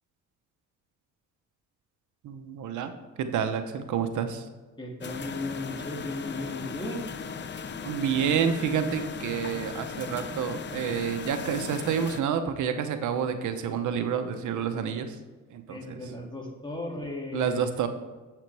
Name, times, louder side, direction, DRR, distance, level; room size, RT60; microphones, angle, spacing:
voice 1, 2.2-2.9 3.2-4.4 7.8-15.1 15.5-16.0 17.3-17.9, right 7 dB, 75° right, 8 dB, 0.9 m, -29 dB
voice 2, 4.8-7.1 15.7-17.6, left 2 dB, 15° left, -1 dB, 2.3 m, -35 dB
sound 1, 5.0-12.2, left 5 dB, 35° left, 0.8 m, -37 dB
9.0 x 7.8 x 3.4 m, 1.3 s
cardioid pair, 90°, 30 cm